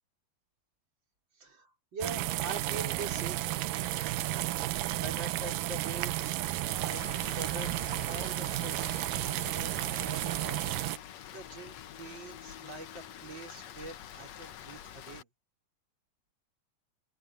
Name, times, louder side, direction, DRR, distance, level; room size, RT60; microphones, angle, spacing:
voice 1, 1.3-3.4 4.6-7.7 8.0-8.9 9.2-15.3, right 3 dB, 25° right, 5.8 m, -44 dB
sound 1, 2.0-11.0, right 15 dB, 75° right, 2.2 m, -33 dB
Rain, 6.9-15.2, left 10 dB, 75° left, 1.5 m, -47 dB
open air
omnidirectional pair, 4.6 m